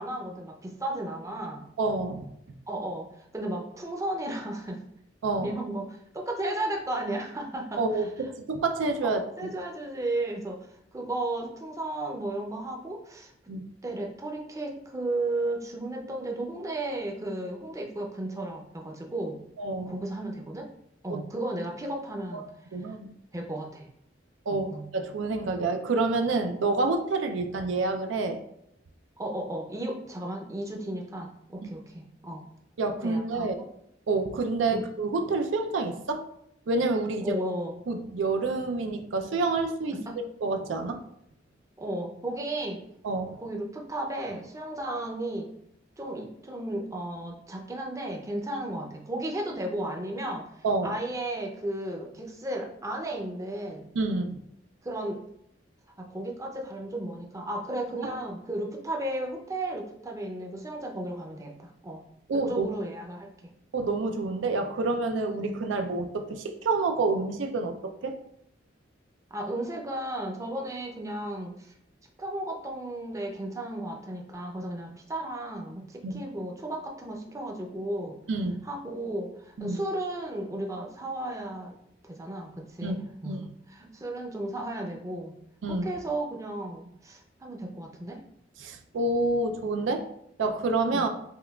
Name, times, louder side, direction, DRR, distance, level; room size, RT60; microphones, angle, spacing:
voice 1, 0.0-1.7 2.7-4.8 5.4-8.1 9.0-9.1 9.4-10.6 10.9-13.3 13.8-19.4 19.9-20.7 21.0-22.5 22.9-23.0 23.3-23.9 24.5-24.9 29.2-32.5 33.0-33.7 34.7-34.8 37.2-37.8 39.9-40.2 41.8-42.8 43.4-45.5 46.0-50.5 50.8-53.9 54.8-55.2 56.0-62.0 62.3-63.3 69.3-71.7 72.2-78.1 78.6-81.7 82.1-85.3 85.7-88.2 90.9-91.1, right 1 dB, 15° right, 1 dB, 0.5 m, -34 dB
voice 2, 1.8-2.3 5.2-5.5 7.8-9.5 13.5-13.6 19.6-20.0 21.1-21.2 22.3-22.5 22.7-23.1 24.5-28.4 31.6-31.7 32.8-33.6 34.1-36.3 36.7-37.4 37.9-39.9 40.4-41.0 43.0-43.4 50.6-50.9 54.0-54.4 58.0-58.1 62.3-62.7 63.7-68.2 76.0-76.3 78.3-78.6 79.6-79.8 82.8-83.0 83.3-83.4 85.6-85.9 88.6-90.0 90.4-91.1, right 3 dB, 90° right, 6 dB, 0.4 m, -28 dB
5.5 x 2.3 x 2.3 m, 0.74 s
head